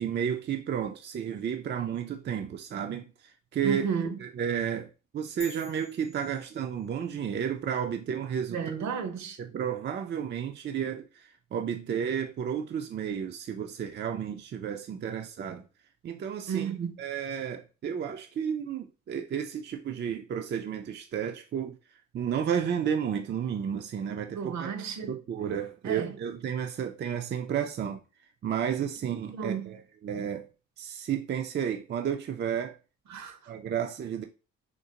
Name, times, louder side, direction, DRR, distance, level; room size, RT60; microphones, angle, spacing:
voice 1, 0.0-3.9 4.2-4.9 5.1-8.8 9.4-15.7 16.0-16.7 17.0-21.8 22.1-24.7 25.1-28.0 28.4-30.5 30.8-32.8 33.5-34.2, right 8 dB, 35° right, 0.4 m, -32 dB
voice 2, 3.6-4.2 8.5-9.4 16.5-17.0 24.3-25.1 25.8-26.1 29.3-29.7 33.1-33.4, right 6 dB, 65° right, 0.8 m, -32 dB
sound 1, 5.4-7.1, left 6 dB, 75° left, 0.6 m, -49 dB
3.8 x 2.4 x 2.8 m
cardioid pair, 90°, 30 cm